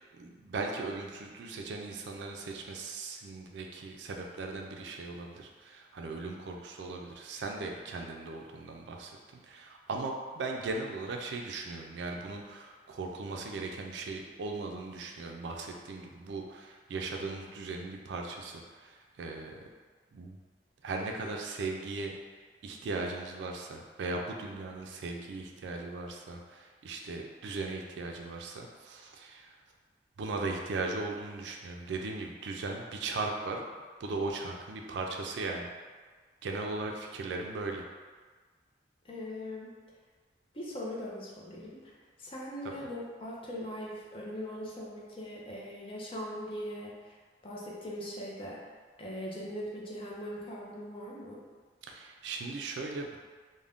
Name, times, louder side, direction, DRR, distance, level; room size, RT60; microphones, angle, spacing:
voice 1, 0.2-9.1 9.5-18.9 19.2-19.5 20.1-20.4 20.8-22.1 22.6-29.5 30.2-33.6 34.0-35.7 36.4-37.8 51.9-53.2, right 3 dB, 75° right, 2 dB, 0.3 m, -38 dB
voice 2, 39.0-39.7 40.5-41.9 42.2-47.2 47.4-48.6 49.0-51.4, equal, 30° left, -4 dB, 0.5 m, -40 dB
2.5 x 2.1 x 3.4 m, 1.5 s
head